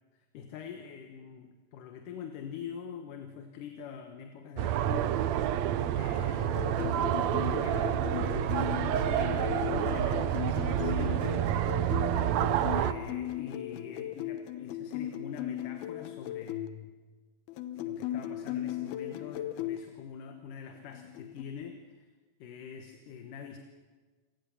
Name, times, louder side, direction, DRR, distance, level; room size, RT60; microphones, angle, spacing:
voice 1, 0.3-5.2 5.9-11.4 12.7-16.9 17.8-22.1 22.4-23.6, left 7 dB, 65° left, 5 dB, 2.6 m, -44 dB
sound 1, 4.6-12.9, right 11 dB, 85° right, 1.5 m, -29 dB
sound 2, 6.4-16.7 17.5-19.8 20.9-21.4, left 12 dB, 90° left, 2.9 m, -37 dB
28.0 x 18.5 x 7.1 m, 1.4 s
omnidirectional pair, 4.3 m